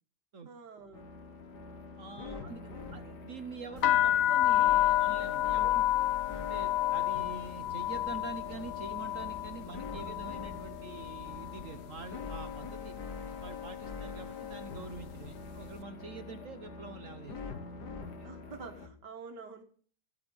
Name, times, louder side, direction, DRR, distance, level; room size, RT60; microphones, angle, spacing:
voice 1, 0.5-1.1 2.2-3.2 5.5-5.7 10.0-10.2 15.3-15.5 18.2-19.6, right 5 dB, 85° right, 4 dB, 2.3 m, -49 dB
sound 1, 0.9-18.9, left 5 dB, 80° left, 2.3 m, -44 dB
voice 2, 2.0-5.8 6.3-12.9 13.4-17.4 18.2-18.4, right 5 dB, 55° right, 9 dB, 1.3 m, -46 dB
sound 2, 3.8-11.7 12.0-12.6 13.3-13.5 13.8-15.3, left 13 dB, 60° left, 1.3 m, -30 dB
15.0 x 8.5 x 7.0 m, 0.43 s
omnidirectional pair, 1.8 m